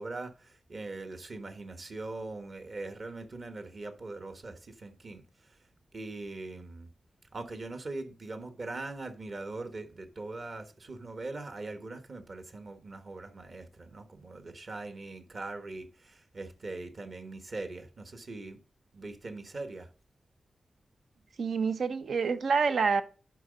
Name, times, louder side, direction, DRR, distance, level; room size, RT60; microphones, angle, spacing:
voice 1, 0.0-5.6 5.9-6.9 7.3-18.6 18.9-19.9, right 2 dB, 50° right, 1.3 m, -41 dB
voice 2, 21.4-23.0, right 5 dB, 85° right, 0.8 m, -27 dB
11.0 x 4.0 x 5.1 m
wide cardioid pair, 120°, 0 cm